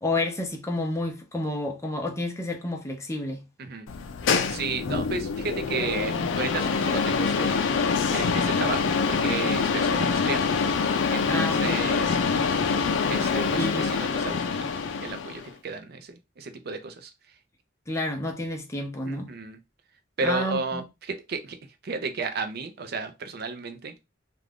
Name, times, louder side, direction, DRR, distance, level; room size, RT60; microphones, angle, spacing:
voice 1, 0.0-3.4 11.3-11.8 13.5-13.9 17.9-19.3 20.2-20.8, left 1 dB, 15° left, 0.6 m, -30 dB
sound 1, 3.9-15.5, left 5 dB, 75° left, 0.4 m, -25 dB
voice 2, 4.5-7.7 8.1-10.4 11.1-12.2 13.1-17.1 19.0-19.6 20.2-21.6 21.8-24.0, right 4 dB, 55° right, 0.5 m, -33 dB
2.5 x 2.3 x 3.3 m
head